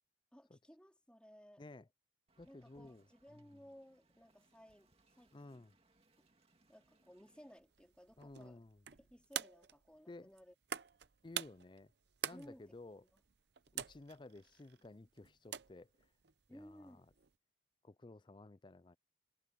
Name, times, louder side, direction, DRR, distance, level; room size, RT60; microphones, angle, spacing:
voice 1, 0.3-1.6 2.4-5.7 6.7-8.6 9.0-10.5 12.3-12.7 13.0-13.2 16.5-17.1, equal, 5° left, 4.3 m, -59 dB
voice 2, 1.6-1.9 2.4-3.0 3.3-3.6 5.3-5.7 8.2-8.8 10.1-10.3 11.2-11.9 12.2-13.0 13.7-15.9 16.5-17.0 17.8-19.0, left 2 dB, 25° left, 0.4 m, -54 dB
Wind, 2.3-7.6, right 2 dB, 30° right, 2.5 m, -73 dB
sound 1, 7.6-17.4, right 9 dB, 60° right, 0.7 m, -48 dB
head